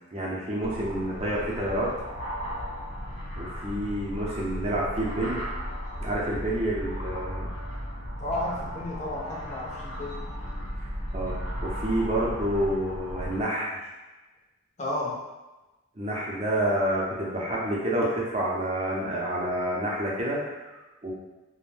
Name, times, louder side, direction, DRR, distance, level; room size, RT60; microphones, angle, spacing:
voice 1, 0.1-1.9 3.3-5.4 6.0-7.5 10.8-13.7 15.9-21.1, right 1 dB, 30° right, -4 dB, 0.6 m, -29 dB
sound 1, 0.6-13.4, equal, 70° left, 0.8 m, -35 dB
voice 2, 8.2-10.3 14.8-15.2, left 1 dB, 35° left, -3 dB, 0.5 m, -32 dB
2.5 x 2.1 x 3.2 m, 1.1 s
head